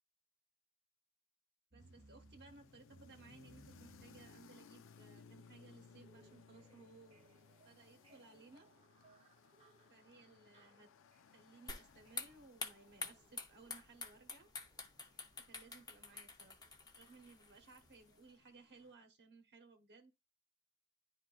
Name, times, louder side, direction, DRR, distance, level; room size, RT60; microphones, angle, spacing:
sound 1, 1.7-17.8 18.1-18.2, right 2 dB, 25° right, 0.8 m, -68 dB
voice 1, 1.7-7.2 7.6-8.7 9.9-10.9 11.3-14.5 15.4-16.6 17.0-20.1, right 3 dB, 50° right, 1.0 m, -61 dB
sound 2, 1.8-18.9, left 6 dB, 60° left, 0.5 m, -65 dB
sound 3, 11.7-18.3, left 4 dB, 20° left, 0.7 m, -49 dB
10.5 x 3.8 x 2.5 m
head